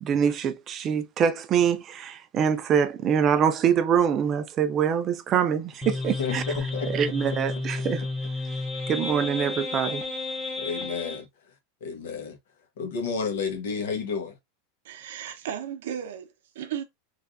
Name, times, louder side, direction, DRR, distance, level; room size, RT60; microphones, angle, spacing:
voice 1, 0.0-6.4 6.9-8.0 8.9-10.0, right 8 dB, 20° right, 0.3 m, -24 dB
sound 1, 5.8-11.2, left 3 dB, 5° left, 0.6 m, -31 dB
voice 2, 6.2-6.9 10.6-11.3 11.8-12.4 12.8-14.3, left 5 dB, 70° left, 1.0 m, -31 dB
voice 3, 14.8-16.3 16.5-16.8, right 9 dB, 70° right, 0.6 m, -34 dB
3.3 x 2.4 x 2.5 m
supercardioid pair, 175°, 0 cm